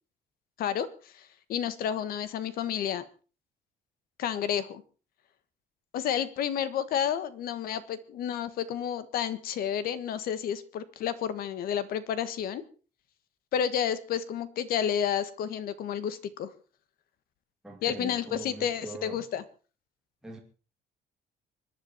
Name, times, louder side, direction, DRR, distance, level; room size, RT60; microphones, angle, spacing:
voice 1, 1.1-3.0 4.2-4.8 5.9-12.6 13.5-16.5 17.8-19.4, left 9 dB, 60° left, 1.6 m, -30 dB
voice 2, 17.6-19.3 20.2-20.4, right 2 dB, 5° right, 2.7 m, -42 dB
25.5 x 10.5 x 4.6 m
cardioid pair, 175°, 17 cm